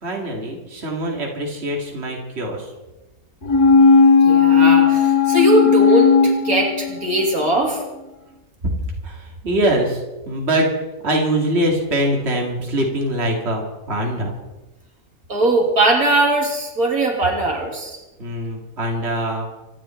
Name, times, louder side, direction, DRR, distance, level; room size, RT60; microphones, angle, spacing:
voice 1, 0.0-2.7 8.6-8.7 9.0-10.7 11.0-14.3 18.2-19.5, right 1 dB, 45° right, 0 dB, 2.7 m, -23 dB
sound 1, 3.5-7.2 7.6-7.7, left 5 dB, 80° left, 1.9 m, -14 dB
voice 2, 4.2-7.8 15.3-18.0, right 2 dB, 70° right, 1 dB, 3.4 m, -19 dB
26.0 x 11.0 x 4.5 m, 1.1 s
omnidirectional pair, 1.6 m